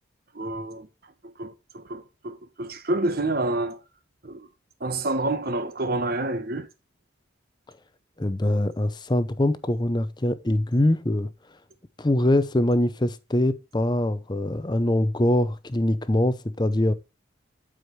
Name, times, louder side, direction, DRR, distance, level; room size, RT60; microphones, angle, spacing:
voice 1, 0.3-0.9 1.2-3.8 4.2-4.5 4.8-6.7, right 2 dB, 50° right, 1.1 m, -28 dB
voice 2, 8.2-11.3 12.0-16.9, left 1 dB, 20° left, 0.6 m, -23 dB
12.0 x 5.0 x 3.2 m
head